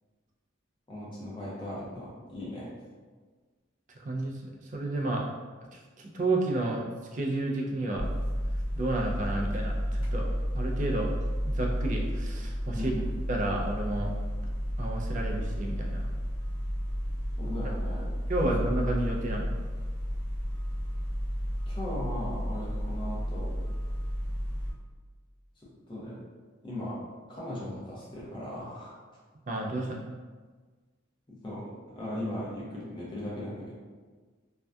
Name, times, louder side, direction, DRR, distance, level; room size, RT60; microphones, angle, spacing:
voice 1, 0.9-2.7 12.7-13.1 17.4-18.1 21.7-23.6 25.6-26.2 26.6-27.0 27.3-28.9 31.3-33.7, left 1 dB, 25° left, -6 dB, 0.6 m, -38 dB
voice 2, 4.0-4.3 4.7-5.3 5.7-8.1 8.7-10.3 10.5-11.1 11.4-12.9 13.3-14.1 14.8-16.1 18.3-19.5 29.5-30.0, right 2 dB, 40° right, -1 dB, 0.3 m, -31 dB
sound 1, 8.0-24.7, equal, 85° left, 1.0 m, -32 dB
2.6 x 2.2 x 2.2 m, 1.4 s
head